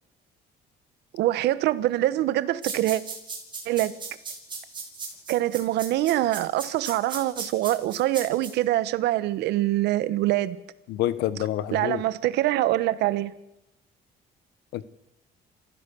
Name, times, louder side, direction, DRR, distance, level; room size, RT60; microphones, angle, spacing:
voice 1, 1.1-3.0 3.7-3.9 5.3-10.6 11.7-13.3, right 15 dB, 80° right, 1.2 m, -24 dB
sound 1, 2.6-8.5, right 4 dB, 30° right, 6.5 m, -36 dB
voice 2, 10.9-12.0 14.7-14.8, left 13 dB, 85° left, 1.2 m, -27 dB
27.5 x 15.0 x 7.0 m
cardioid pair, 110°, 17 cm